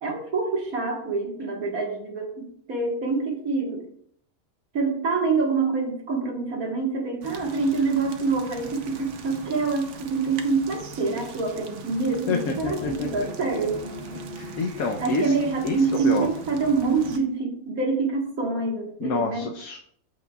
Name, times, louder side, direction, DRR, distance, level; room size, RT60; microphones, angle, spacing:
voice 1, 0.0-3.9 4.7-13.8 15.0-19.5, right 4 dB, 90° right, 0 dB, 2.0 m, -26 dB
sound 1, 7.2-17.2, right 5 dB, 60° right, 1.1 m, -42 dB
sound 2, 12.2-16.8, left 2 dB, 30° left, 1.1 m, -41 dB
voice 2, 12.3-13.2 14.4-15.3 15.6-15.8 16.0-16.3 19.0-19.8, left 4 dB, 85° left, 2 dB, 1.2 m, -28 dB
14.0 x 5.2 x 2.3 m, 0.65 s
omnidirectional pair, 1.5 m